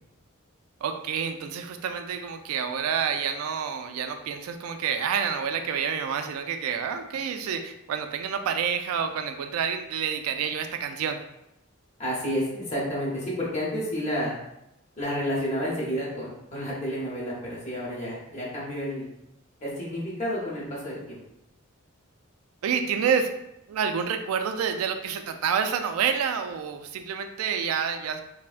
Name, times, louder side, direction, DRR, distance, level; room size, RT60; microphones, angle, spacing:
voice 1, 0.8-11.2 22.6-23.3 23.7-28.2, right 7 dB, 80° right, 8 dB, 0.3 m, -28 dB
voice 2, 12.0-14.3 15.0-19.0 19.6-21.2, equal, 30° left, -5 dB, 0.9 m, -30 dB
3.3 x 2.1 x 2.4 m, 0.86 s
head